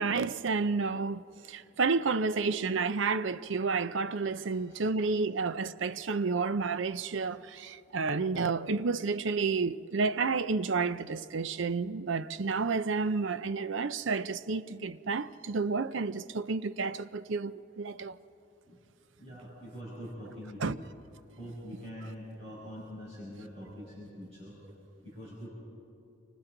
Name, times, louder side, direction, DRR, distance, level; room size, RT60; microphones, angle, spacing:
voice 1, 0.0-18.2 20.6-20.7, right 4 dB, 70° right, 0.6 m, -30 dB
voice 2, 4.4-4.8 18.6-18.8 19.2-20.8 21.3-24.6 25.0-25.5, equal, 30° right, 5.6 m, -44 dB
29.5 x 25.0 x 3.9 m
head